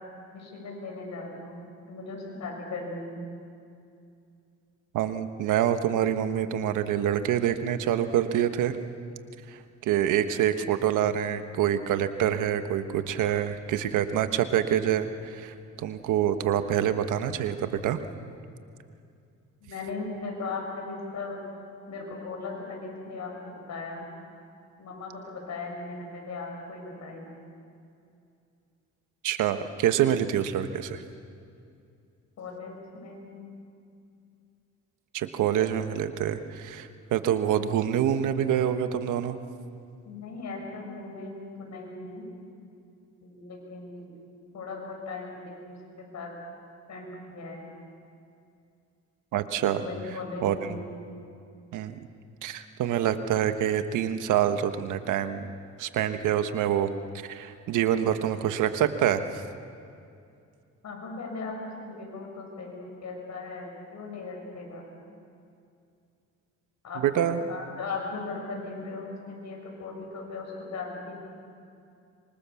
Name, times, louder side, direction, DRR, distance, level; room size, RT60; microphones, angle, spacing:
voice 1, 0.3-3.2 19.6-21.5 21.9-24.1 24.8-27.4 32.4-33.5 40.0-42.3 43.2-44.1 44.5-46.3 46.9-47.7 49.8-50.8 60.8-64.8 66.8-71.2, left 3 dB, 65° left, 1 dB, 7.4 m, -38 dB
voice 2, 4.9-8.8 9.5-18.0 29.2-31.0 35.1-39.4 49.3-49.8 50.4-50.8 51.7-51.9 52.4-55.5 55.8-56.9 57.2-59.2 67.0-67.4, right 10 dB, 85° right, 9 dB, 1.4 m, -26 dB
26.0 x 25.0 x 7.2 m, 2.5 s
cardioid pair, 90°, 30 cm